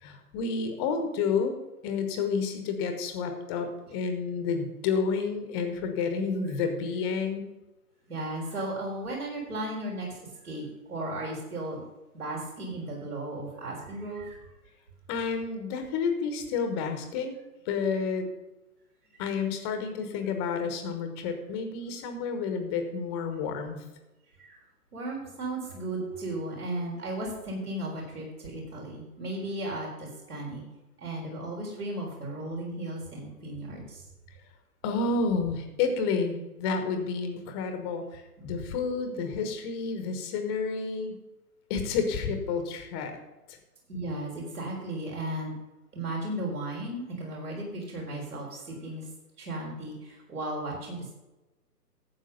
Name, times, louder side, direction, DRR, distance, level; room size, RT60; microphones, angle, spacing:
voice 1, 0.0-1.5 1.8-7.5 15.1-17.4 17.6-18.3 19.2-23.8 34.8-41.2 41.7-43.2 43.5-43.6, left 5 dB, 15° left, 6 dB, 1.1 m, -30 dB
voice 2, 8.1-10.2 10.4-11.8 12.1-14.4 19.1-19.2 24.4-24.6 24.9-30.6 31.0-34.0 43.9-45.5 45.9-49.1 49.4-51.1, right 1 dB, 65° right, -2 dB, 4.2 m, -35 dB
12.5 x 8.1 x 5.4 m, 1.0 s
figure-of-eight pair, 130°, 48 cm